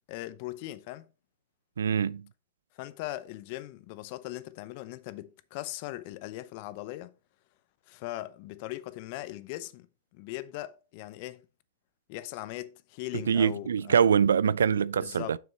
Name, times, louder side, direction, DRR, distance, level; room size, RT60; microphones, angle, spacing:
voice 1, 0.1-1.1 2.7-7.1 7.9-9.9 10.1-11.4 12.1-14.0 15.0-15.4, left 16 dB, 50° left, 0.7 m, -39 dB
voice 2, 1.8-2.2 13.3-15.4, right 7 dB, 80° right, 0.3 m, -24 dB
6.9 x 6.3 x 4.2 m
hypercardioid pair, 110°, 0 cm